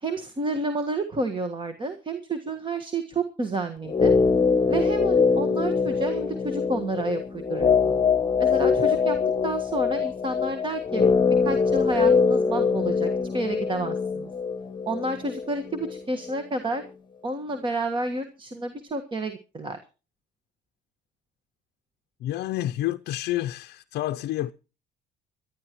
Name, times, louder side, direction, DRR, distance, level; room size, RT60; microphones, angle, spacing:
voice 1, 0.0-4.1 4.7-7.9 8.4-11.0 11.4-14.3 14.9-16.8 17.2-19.8, right 2 dB, 30° right, 1.5 m, -30 dB
sound 1, 3.9-16.0 16.2-16.3, left 5 dB, 25° left, 1.1 m, -23 dB
voice 2, 22.2-24.5, left 14 dB, 70° left, 0.6 m, -29 dB
24.0 x 11.5 x 3.0 m
cardioid pair, 110°, 17 cm